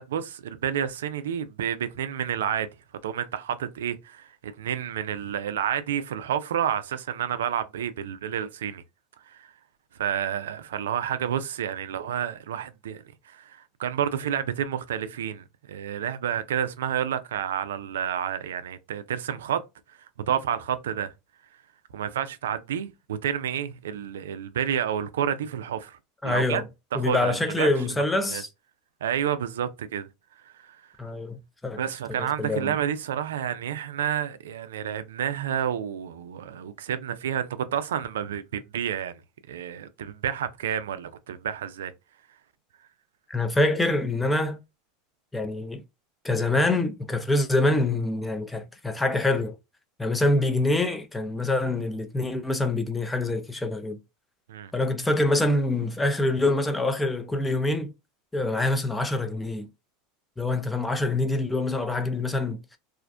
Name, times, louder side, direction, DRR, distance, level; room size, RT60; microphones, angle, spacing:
voice 1, 0.0-2.7 3.0-8.8 9.3-9.5 10.0-19.6 20.3-21.1 21.9-26.0 26.2-26.6 26.9-27.7 28.3-28.4 29.0-30.1 30.4-30.8 31.8-39.2 39.5-41.9 54.5-54.7, right 9 dB, 85° right, 0.3 m, -30 dB
voice 2, 26.2-26.6 26.9-28.5 31.0-31.8 32.2-32.7 43.3-44.6 45.3-45.8 46.2-49.6 50.0-54.0 54.7-57.9 58.3-59.7 60.4-62.6, left 2 dB, 10° left, 0.5 m, -25 dB
2.4 x 2.1 x 2.4 m
hypercardioid pair, 105°, 0 cm